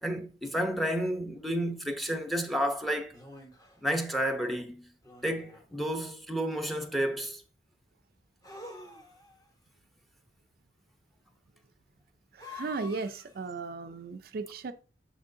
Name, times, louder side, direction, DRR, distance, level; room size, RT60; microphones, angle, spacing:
voice 1, 0.0-3.1 3.8-4.9 5.2-7.4, equal, ahead, 0.8 m, -31 dB
sound 1, 2.1-2.2 3.1-3.8 5.0-5.8 8.4-9.5 12.4-13.4, left 3 dB, 20° left, 1.2 m, -48 dB
voice 2, 12.3-14.7, right 4 dB, 60° right, 0.4 m, -36 dB
6.8 x 6.0 x 2.7 m
head